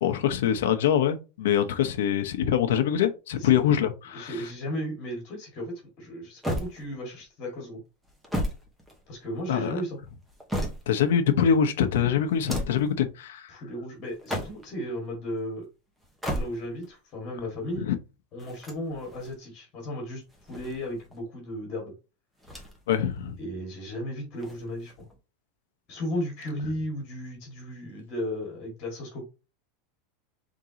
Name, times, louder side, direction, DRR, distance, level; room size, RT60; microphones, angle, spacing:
voice 1, 0.0-4.4 9.5-9.8 10.9-13.5 17.8-18.0 22.9-23.4, left 9 dB, 80° left, 0.8 m, -24 dB
voice 2, 4.1-7.8 9.1-10.0 13.5-15.7 16.3-17.9 18.3-20.2 20.5-21.9 23.4-25.1 25.9-29.2, equal, 25° left, 2.0 m, -35 dB
sound 1, 6.4-7.2 8.0-9.4 10.1-11.1 12.3-12.9 14.1-14.8 16.0-16.9 18.4-19.4 20.3-21.2 22.4-23.0 23.3-23.4 24.4-25.2, equal, 5° right, 0.9 m, -34 dB
5.0 x 3.7 x 2.9 m
supercardioid pair, 180°, 0 cm